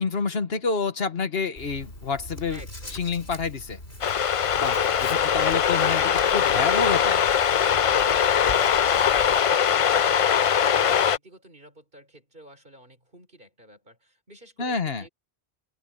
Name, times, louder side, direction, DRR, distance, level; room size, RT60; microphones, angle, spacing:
voice 1, 0.0-2.6 2.9-3.8 4.6-4.8 5.3-6.0 6.3-7.2 14.6-15.0, left 4 dB, 70° left, 1.6 m, -28 dB
Writing, 1.6-9.4, left 1 dB, 90° left, 6.0 m, -41 dB
voice 2, 2.5-3.0 8.1-15.1, right 1 dB, 55° right, 6.1 m, -50 dB
sound 1, 4.0-11.2, left 8 dB, 50° left, 0.4 m, -21 dB
open air
omnidirectional pair, 1.0 m